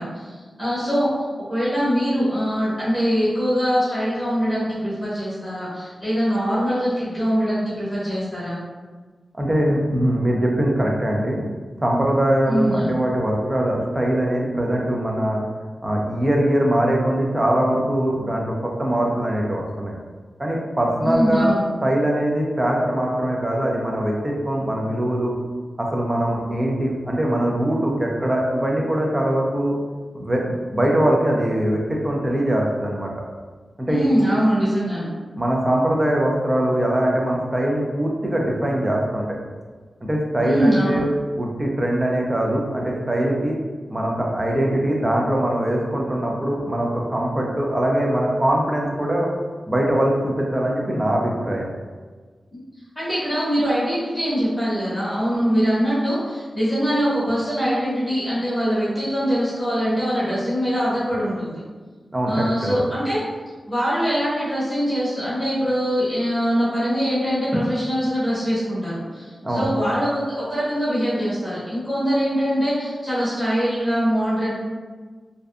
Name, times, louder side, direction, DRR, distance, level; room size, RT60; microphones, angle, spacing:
voice 1, 0.0-8.6 12.5-12.9 21.0-21.7 33.9-35.1 40.4-41.0 52.5-52.6 53.0-61.6 62.3-63.2 63.7-74.5, equal, 10° left, -11 dB, 0.8 m, -23 dB
voice 2, 9.4-11.4 11.8-15.4 15.8-19.9 20.4-21.5 21.8-25.3 25.8-29.7 30.1-30.4 30.7-33.1 33.8-34.0 35.4-39.4 40.0-41.1 41.4-43.6 43.9-49.3 49.7-51.7 62.1-62.8 69.4-69.7, right 1 dB, 25° right, -1 dB, 0.4 m, -22 dB
2.6 x 2.2 x 2.4 m, 1.4 s
wide cardioid pair, 120°, 0 cm